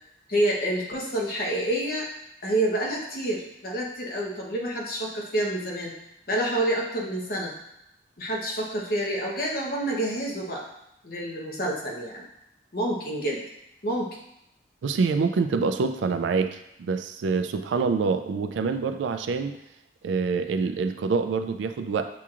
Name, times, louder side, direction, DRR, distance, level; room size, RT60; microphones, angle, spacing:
voice 1, 0.3-2.1 2.4-5.9 6.3-7.5 8.2-10.6 11.0-12.3 12.7-13.4 13.8-14.2, right 1 dB, 50° left, -2 dB, 0.9 m, -28 dB
voice 2, 14.8-19.5 20.0-22.1, right 4 dB, 80° right, 8 dB, 0.3 m, -26 dB
7.0 x 2.9 x 2.4 m, 0.80 s
head